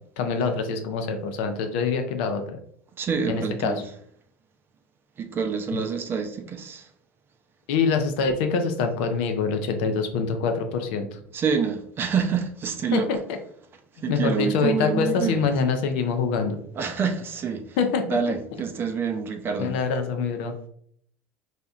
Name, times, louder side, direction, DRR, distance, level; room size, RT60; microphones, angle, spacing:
voice 1, 0.2-2.6 3.2-3.8 5.7-5.8 7.7-11.2 12.9-13.4 14.1-16.6 17.8-18.0 19.6-20.7, left 5 dB, 65° left, 0.5 m, -25 dB
voice 2, 3.0-3.8 5.2-6.9 11.3-13.1 14.0-15.5 16.8-17.8 18.1-19.7, right 6 dB, 35° right, 0.5 m, -27 dB
4.0 x 2.8 x 2.3 m
figure-of-eight pair, 70°, 7 cm